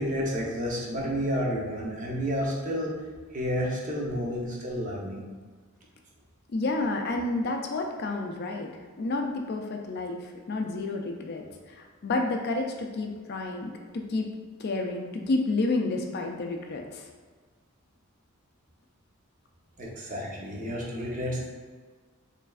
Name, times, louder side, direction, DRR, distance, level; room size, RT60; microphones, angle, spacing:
voice 1, 0.0-2.9 3.3-5.2 19.8-21.5, equal, 40° right, -4 dB, 0.8 m, -30 dB
voice 2, 6.5-8.7 9.0-14.3 14.6-17.0, left 2 dB, 50° left, 3 dB, 0.4 m, -30 dB
4.7 x 3.2 x 2.4 m, 1.5 s
head